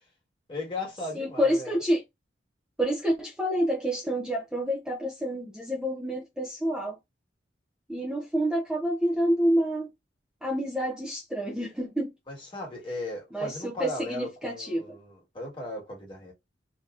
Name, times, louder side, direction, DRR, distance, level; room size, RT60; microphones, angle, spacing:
voice 1, 0.5-1.8 12.3-16.3, left 2 dB, 25° left, 1.4 m, -37 dB
voice 2, 1.1-2.0 2.8-7.0 7.9-9.9 10.4-12.1 13.3-15.0, equal, 5° right, 0.5 m, -28 dB
3.3 x 2.8 x 2.3 m
head